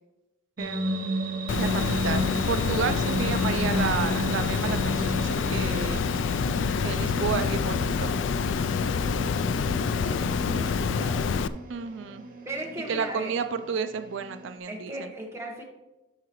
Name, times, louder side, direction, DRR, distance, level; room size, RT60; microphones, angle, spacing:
sound 1, 0.6-14.6, equal, 45° right, 0.9 m, -34 dB
voice 1, 0.6-1.0 1.6-6.0 6.8-8.1 11.7-12.2 12.9-15.1, right 6 dB, 75° right, 9 dB, 0.4 m, -31 dB
Water, 1.5-11.5, left 5 dB, 70° left, 0.3 m, -27 dB
voice 2, 9.9-11.3 12.4-13.3 14.7-15.6, right 1 dB, 15° right, -1 dB, 1.2 m, -37 dB
12.0 x 4.8 x 3.1 m, 1.0 s
head